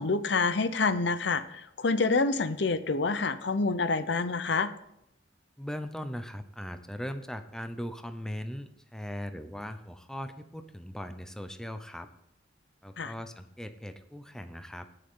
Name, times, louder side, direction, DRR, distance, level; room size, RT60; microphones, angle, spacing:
voice 1, 0.0-4.7 13.0-13.1, left 3 dB, 65° left, 13 dB, 0.7 m, -27 dB
voice 2, 5.6-12.1 12.8-14.9, equal, 5° left, 8 dB, 0.6 m, -39 dB
19.0 x 6.6 x 3.7 m, 0.80 s
head